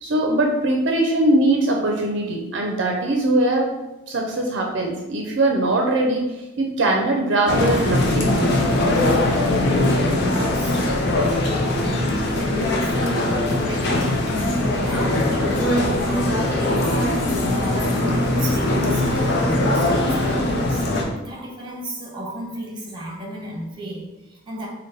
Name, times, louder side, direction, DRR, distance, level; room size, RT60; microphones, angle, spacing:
voice 1, 0.0-3.7 4.1-8.6, right 2 dB, 65° right, 1 dB, 0.5 m, -21 dB
sound 1, 7.5-21.0, left 1 dB, 60° left, 0.6 m, -21 dB
voice 2, 10.3-10.8 11.8-20.9 21.2-24.7, right 1 dB, 25° right, -3 dB, 0.8 m, -33 dB
3.8 x 2.1 x 3.9 m, 1.0 s
head